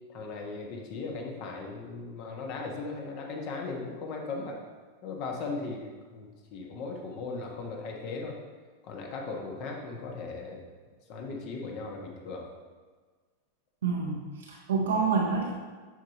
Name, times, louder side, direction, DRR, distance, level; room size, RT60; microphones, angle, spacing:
voice 1, 0.1-4.6 5.0-8.4 8.8-10.6 11.1-12.5, left 3 dB, 45° left, 1 dB, 1.3 m, -37 dB
voice 2, 13.8-15.5, right 5 dB, 65° right, -1 dB, 0.8 m, -28 dB
9.4 x 5.7 x 2.8 m, 1.4 s
figure-of-eight pair, 90°, 0 cm